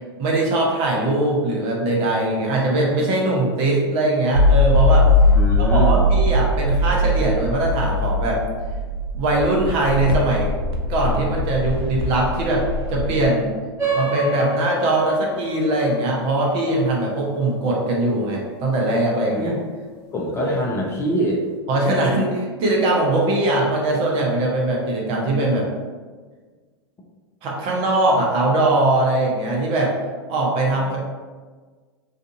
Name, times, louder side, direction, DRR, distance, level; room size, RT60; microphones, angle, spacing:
voice 1, 0.2-5.1 5.6-8.4 9.1-10.5 10.9-13.5 13.9-19.5 20.4-20.5 21.7-25.7 27.4-29.9 30.3-31.0, right 2 dB, 45° right, -2 dB, 0.7 m, -21 dB
Paralell (Echoflux reconstruction), 4.3-13.3, left 1 dB, 80° right, 0.4 m, -20 dB
voice 2, 5.3-6.1 19.3-19.6 20.1-21.4, equal, 20° left, -2 dB, 0.5 m, -24 dB
sound 1, 13.8-18.7, right 2 dB, 25° right, 1.2 m, -29 dB
2.5 x 2.4 x 2.6 m, 1.5 s
hypercardioid pair, 100°, 13 cm